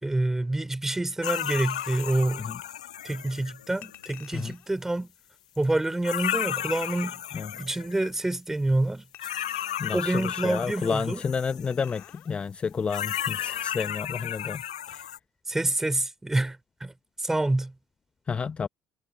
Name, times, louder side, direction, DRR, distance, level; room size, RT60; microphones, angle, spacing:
voice 1, 0.0-2.5 3.0-5.1 5.6-7.2 7.5-9.1 9.9-11.2 15.5-16.9 17.2-17.7, right 2 dB, 10° right, 4.8 m, -27 dB
sound 1, 1.2-4.1 5.6-5.7 6.0-8.1 9.2-12.1 12.9-15.2, left 11 dB, 80° left, 1.2 m, -33 dB
Chink clink, 1.5-2.3 3.8-4.7 6.6-7.3 9.1-10.1 11.7-12.3 12.7-12.8, left 13 dB, 55° left, 3.5 m, -48 dB
voice 2, 9.8-14.6 14.9-15.1 18.3-18.7, left 5 dB, 30° left, 0.7 m, -30 dB
figure-of-eight pair, 60°, 4 cm